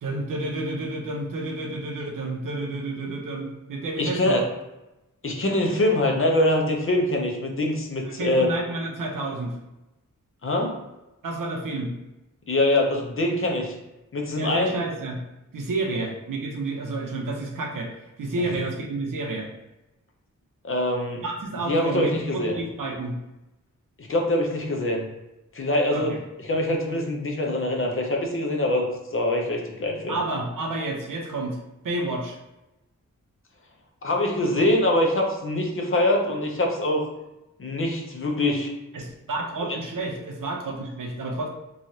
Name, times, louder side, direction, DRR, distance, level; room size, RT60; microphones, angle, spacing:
voice 1, 0.0-4.4 8.1-9.5 11.2-11.9 14.4-15.2 15.5-17.9 18.2-19.5 21.2-23.2 25.9-26.0 30.1-31.6 31.8-32.4 38.9-41.5, right 2 dB, 80° right, 0 dB, 0.7 m, -30 dB
voice 2, 4.0-4.4 5.2-8.5 10.4-10.7 12.5-13.7 14.1-14.8 20.6-21.2 21.7-22.6 24.0-25.1 25.5-30.2 34.0-37.1 37.6-38.7, left 1 dB, 40° left, 1 dB, 0.5 m, -24 dB
3.1 x 2.3 x 2.7 m, 0.97 s
wide cardioid pair, 100°, 32 cm